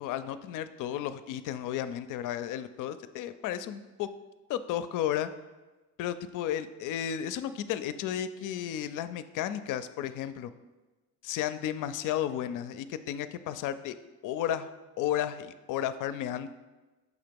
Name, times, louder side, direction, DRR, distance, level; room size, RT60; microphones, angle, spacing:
voice 1, 0.0-4.1 4.5-5.3 6.0-10.5 11.2-14.0 14.2-14.7 15.0-16.5, left 10 dB, 65° left, 12 dB, 0.5 m, -33 dB
6.2 x 2.9 x 5.2 m, 1.2 s
supercardioid pair, 85°, 34 cm